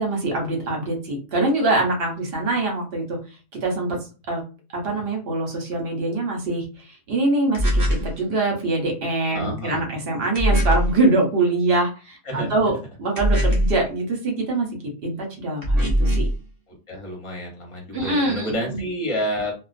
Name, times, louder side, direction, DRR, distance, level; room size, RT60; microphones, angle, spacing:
voice 1, 0.0-3.2 3.6-4.0 4.3-4.4 4.7-14.7 15.0-16.3 17.9-18.8, right 2 dB, 60° right, 1 dB, 1.0 m, -24 dB
sound 1, 7.5-8.1 10.4-10.9 13.2-13.8 15.6-16.4, equal, 25° right, 0.6 m, -20 dB
voice 2, 9.3-9.8 12.2-12.6 16.7-19.5, equal, 30° left, -1 dB, 0.9 m, -29 dB
2.4 x 2.2 x 2.4 m, 0.33 s
omnidirectional pair, 1.1 m